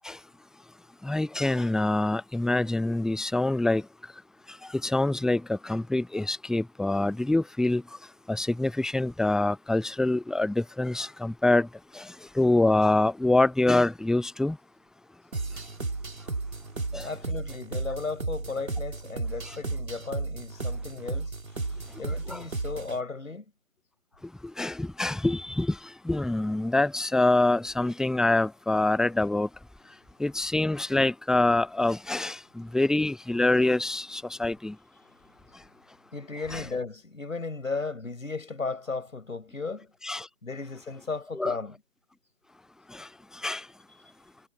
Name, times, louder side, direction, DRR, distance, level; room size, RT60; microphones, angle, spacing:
voice 1, 1.0-3.8 4.8-7.8 8.3-11.7 12.0-12.1 12.4-14.6 16.9-17.1 22.3-22.4 24.6-25.8 26.1-29.5 30.2-34.7 36.5-36.6 40.0-40.3 41.4-41.6 42.9-43.1 43.4-43.6, left 2 dB, ahead, 0.3 m, -25 dB
sound 1, 15.3-23.0, right 3 dB, 75° right, 3.7 m, -34 dB
voice 2, 17.0-21.3 21.9-23.5 35.0-39.9 40.4-41.8, left 4 dB, 70° left, 5.7 m, -35 dB
figure-of-eight pair, 160°, 41 cm